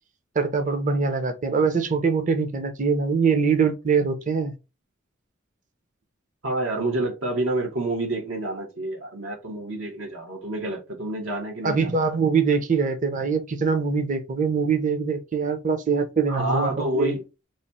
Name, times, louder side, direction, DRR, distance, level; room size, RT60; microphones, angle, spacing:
voice 1, 0.4-4.5 11.6-17.1, right 5 dB, 40° right, 0.6 m, -23 dB
voice 2, 6.4-12.0 16.3-17.2, right 1 dB, 85° right, 1.4 m, -28 dB
3.1 x 2.4 x 4.1 m
head